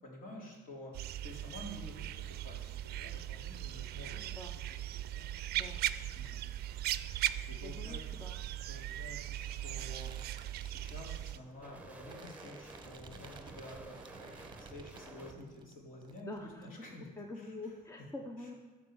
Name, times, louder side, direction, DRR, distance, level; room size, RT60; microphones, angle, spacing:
voice 1, 0.0-5.3 6.1-6.5 7.2-8.3 8.7-17.1 17.3-17.8 18.4-18.5, left 1 dB, 55° left, -2 dB, 3.5 m, -51 dB
sound 1, 0.9-11.4, right 13 dB, 70° right, 0.5 m, -39 dB
sound 2, 1.4-15.3 16.4-16.5, right 3 dB, 10° right, 1.1 m, -56 dB
voice 2, 5.5-5.8 7.6-8.4 16.2-16.6 17.2-18.5, left 2 dB, 15° left, 3 dB, 0.9 m, -45 dB
sound 3, 8.9-15.7 16.0-16.7, right 5 dB, 30° right, 1.0 m, -56 dB
13.5 x 4.6 x 7.2 m, 1.3 s
cardioid pair, 110°, 17 cm